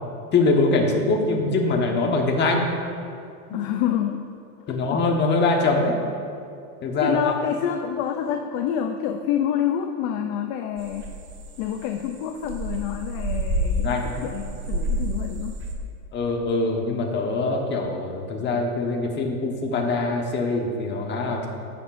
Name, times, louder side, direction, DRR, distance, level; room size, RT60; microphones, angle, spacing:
voice 1, 0.3-2.6 3.5-3.6 4.7-6.0 6.8-7.3 13.8-14.0 16.1-21.5, left 3 dB, 25° left, 1 dB, 1.2 m, -23 dB
voice 2, 3.5-4.3 4.7-5.0 7.0-11.1 11.6-15.6, left 9 dB, 40° left, 5 dB, 0.5 m, -27 dB
sound 1, 10.8-15.7, equal, 25° right, 1.1 m, -29 dB
15.5 x 6.7 x 2.6 m, 2.5 s
supercardioid pair, 135°, 45 cm